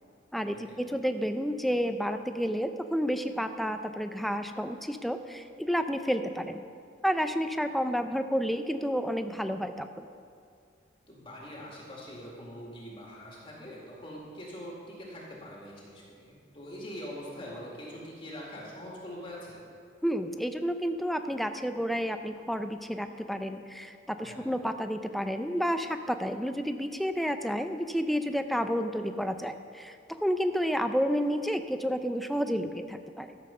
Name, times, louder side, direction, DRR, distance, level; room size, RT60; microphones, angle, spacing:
voice 1, 0.3-6.6 7.0-10.1 20.0-33.4, equal, ahead, 8 dB, 0.4 m, -30 dB
voice 2, 11.1-19.6 24.2-24.5, equal, 30° left, -4 dB, 2.0 m, -43 dB
14.0 x 7.5 x 5.6 m, 2.3 s
head